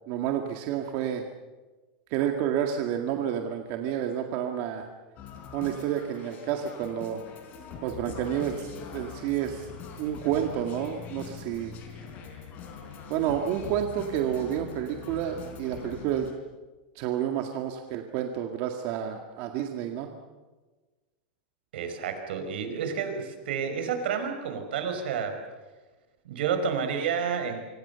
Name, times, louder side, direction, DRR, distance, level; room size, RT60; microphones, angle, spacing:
voice 1, 0.1-1.2 2.1-4.9 5.5-7.2 7.8-9.7 10.0-11.7 13.1-16.3 17.0-20.1, right 10 dB, 45° right, 4 dB, 1.9 m, -30 dB
sound 1, 5.2-16.3, left 6 dB, 30° left, 4.6 m, -43 dB
voice 2, 21.7-25.4 26.3-27.6, right 6 dB, 80° right, 7 dB, 5.1 m, -30 dB
26.5 x 25.0 x 7.0 m, 1.3 s
supercardioid pair, 165°, 5 cm